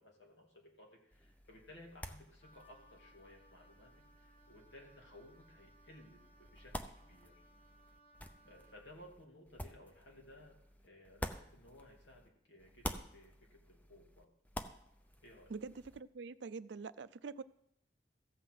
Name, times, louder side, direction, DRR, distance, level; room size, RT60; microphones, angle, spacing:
voice 1, 0.0-7.4 8.4-14.3 15.2-15.6, left 1 dB, 80° left, 0 dB, 2.8 m, -59 dB
sound 1, 1.1-12.3 12.6-16.0, left 1 dB, 10° left, 0.5 m, -49 dB
Wind instrument woodwind instrument, 2.4-8.9, right 1 dB, 30° left, 1.2 m, -66 dB
voice 2, 15.5-17.4, right 4 dB, 75° right, 14 dB, 0.5 m, -45 dB
14.5 x 5.8 x 7.7 m, 0.77 s
head